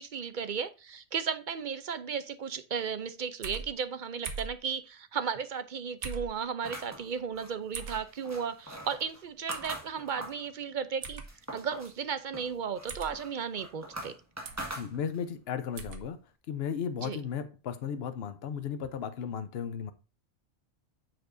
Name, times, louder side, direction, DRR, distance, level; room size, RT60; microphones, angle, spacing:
voice 1, 0.0-11.2 11.5-14.1 17.0-17.2, right 6 dB, 55° right, 0.6 m, -35 dB
sound 1, 3.4-3.7 4.2-4.6 6.0-6.3 7.7-8.0 9.5-9.7 11.0-11.3 12.9-13.1 14.4-14.7 15.7-16.0, right 5 dB, 80° right, 1.3 m, -39 dB
sound 2, 6.6-10.5 10.9-12.0 12.3-15.4, right 1 dB, 15° right, 1.7 m, -43 dB
voice 2, 14.7-16.2 16.5-19.9, left 7 dB, 65° left, 0.9 m, -35 dB
7.7 x 6.9 x 2.6 m
omnidirectional pair, 1.2 m